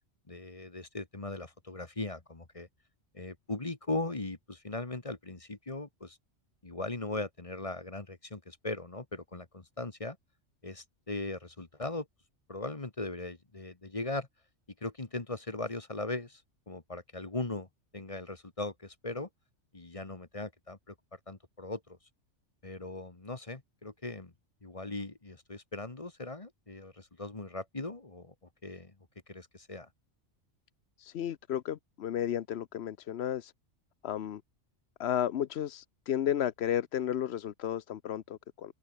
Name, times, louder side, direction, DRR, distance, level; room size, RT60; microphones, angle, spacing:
voice 1, 0.3-2.7 3.1-6.2 6.6-10.2 10.6-12.1 12.5-14.3 14.8-16.4 16.7-17.7 17.9-19.3 19.7-20.9 21.3-22.0 22.6-24.3 24.6-28.3 28.6-28.9 29.3-29.9, left 2 dB, 30° left, 1.7 m, -39 dB
voice 2, 31.0-33.5 34.0-34.4 35.0-38.7, left 10 dB, 65° left, 0.9 m, -33 dB
omnidirectional pair, 1.2 m